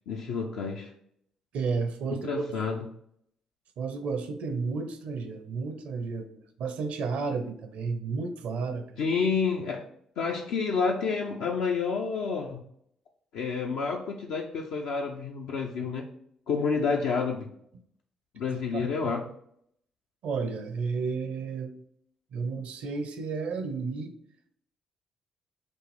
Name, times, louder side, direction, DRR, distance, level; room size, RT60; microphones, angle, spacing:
voice 1, 0.1-0.9 2.1-2.8 9.0-9.8 10.2-12.6 13.3-16.1 16.5-17.5 18.3-19.2, left 5 dB, 70° left, -1 dB, 0.5 m, -29 dB
voice 2, 1.5-2.5 3.8-8.9 18.7-19.0 20.2-21.8 22.3-24.1, right 4 dB, 70° right, 7 dB, 0.6 m, -32 dB
6.2 x 2.5 x 3.2 m, 0.68 s
hypercardioid pair, 45°, 2 cm